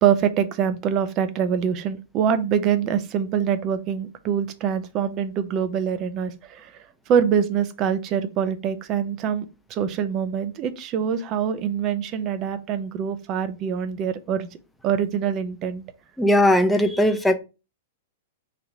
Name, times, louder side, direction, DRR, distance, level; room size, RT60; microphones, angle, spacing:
voice 1, 0.0-6.7 7.1-14.5 14.8-15.8, right 8 dB, 35° right, 0.6 m, -24 dB
voice 2, 16.2-17.3, left 1 dB, 5° left, 0.7 m, -18 dB
4.1 x 2.8 x 4.5 m
figure-of-eight pair, 100°, 0 cm